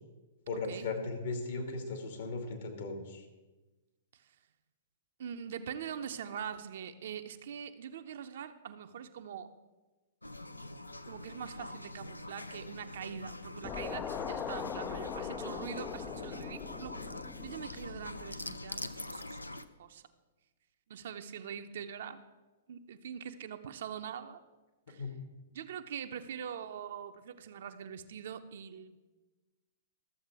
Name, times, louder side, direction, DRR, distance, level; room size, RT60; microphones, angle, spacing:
voice 1, 0.5-3.3 25.0-25.1, left 3 dB, 60° left, 4 dB, 1.9 m, -37 dB
voice 2, 5.2-9.5 11.1-17.1 17.4-19.4 19.8-20.0 20.9-22.2 22.7-24.4 24.9-25.0 25.5-29.0, right 8 dB, 55° right, 8 dB, 0.6 m, -43 dB
sound 1, 10.2-19.7, left 1 dB, 85° left, 0.5 m, -44 dB
sound 2, 13.6-18.9, left 7 dB, 25° left, 0.4 m, -41 dB
13.0 x 7.3 x 4.8 m, 1.2 s
figure-of-eight pair, 110°, 0 cm